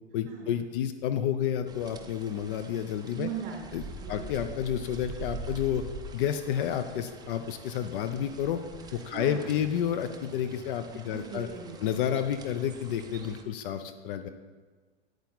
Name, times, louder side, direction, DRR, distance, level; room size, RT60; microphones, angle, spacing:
voice 1, 0.1-3.3 3.7-5.8 6.1-8.6 8.9-11.5 11.8-14.3, left 9 dB, 50° left, 9 dB, 0.7 m, -30 dB
sound 1, 1.7-13.4, right 3 dB, 10° right, 0.7 m, -45 dB
voice 2, 3.2-4.3 9.1-9.5 11.1-11.9, right 7 dB, 35° right, -1 dB, 3.2 m, -39 dB
9.6 x 8.5 x 4.0 m, 1.4 s
hypercardioid pair, 120°, 35 cm